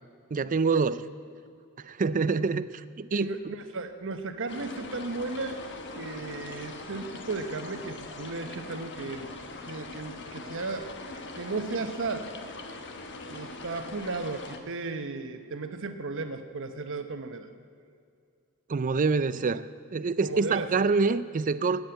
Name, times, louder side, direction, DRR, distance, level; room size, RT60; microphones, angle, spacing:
voice 1, 0.3-1.1 1.8-3.3 18.7-19.6 19.9-21.8, right 4 dB, 35° right, 15 dB, 0.4 m, -26 dB
voice 2, 3.1-5.6 5.9-9.3 9.7-10.9 11.3-12.3 13.3-17.5 20.2-20.8, right 3 dB, 60° right, 8 dB, 1.0 m, -35 dB
sound 1, 4.5-14.6, left 2 dB, 55° left, 1.3 m, -41 dB
16.5 x 7.6 x 9.0 m, 2.3 s
head